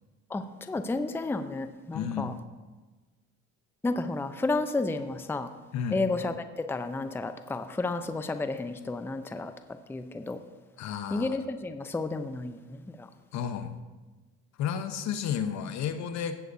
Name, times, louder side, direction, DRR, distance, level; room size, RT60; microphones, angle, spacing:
voice 1, 0.3-2.3 3.8-5.5 5.9-9.5 9.9-10.4 11.1-12.6 13.0-13.1, left 3 dB, 5° left, 9 dB, 0.5 m, -31 dB
voice 2, 1.9-2.3 5.7-6.0 10.8-11.4 13.3-13.7 14.6-16.4, left 8 dB, 60° left, 9 dB, 0.9 m, -32 dB
17.0 x 8.0 x 2.7 m, 1.3 s
supercardioid pair, 85°, 31 cm